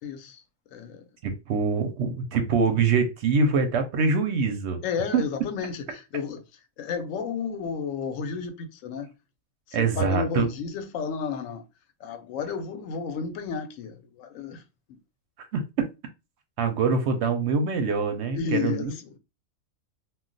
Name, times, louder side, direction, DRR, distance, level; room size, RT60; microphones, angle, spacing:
voice 1, 0.0-1.1 4.8-9.1 9.7-11.7 12.0-15.0 18.3-19.2, left 6 dB, 70° left, 0.9 m, -32 dB
voice 2, 1.2-4.8 5.1-5.2 9.7-10.5 15.5-15.6 16.6-18.9, right 4 dB, 65° right, 0.8 m, -24 dB
2.3 x 2.2 x 3.8 m
omnidirectional pair, 1.4 m